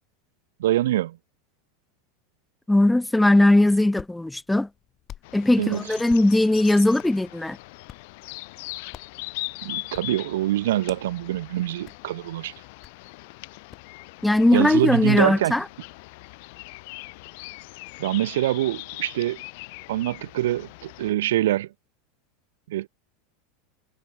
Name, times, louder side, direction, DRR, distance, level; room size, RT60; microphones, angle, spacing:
voice 1, 0.6-1.2 5.6-5.9 9.6-12.5 14.5-15.5 18.0-19.4 19.9-21.7 22.7-22.9, right 14 dB, 70° right, 0.7 m, -24 dB
voice 2, 2.7-4.7 5.3-7.6 14.2-15.6, left 1 dB, 5° left, 0.4 m, -19 dB
Hands, 3.6-13.9, left 11 dB, 35° left, 2.0 m, -50 dB
sound 1, 5.2-21.1, left 26 dB, 60° left, 2.6 m, -41 dB
figure-of-eight pair, 85°, 0 cm